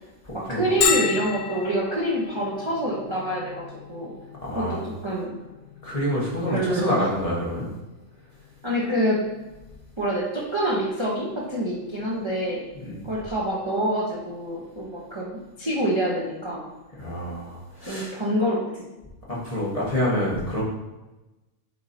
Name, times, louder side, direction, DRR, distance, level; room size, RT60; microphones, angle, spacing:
voice 1, 0.3-4.1 4.5-5.3 6.5-6.9 8.6-9.2 10.0-12.6 13.0-16.6 17.8-18.9, right 1 dB, 25° right, -4 dB, 0.9 m, -26 dB
Bell, 0.8-16.2, left 7 dB, 85° left, 1.0 m, -35 dB
voice 2, 4.4-4.9 5.8-7.7 12.7-13.1 17.0-18.1 19.3-20.6, equal, 25° left, -6 dB, 1.6 m, -27 dB
7.8 x 4.7 x 2.8 m, 1.1 s
omnidirectional pair, 1.4 m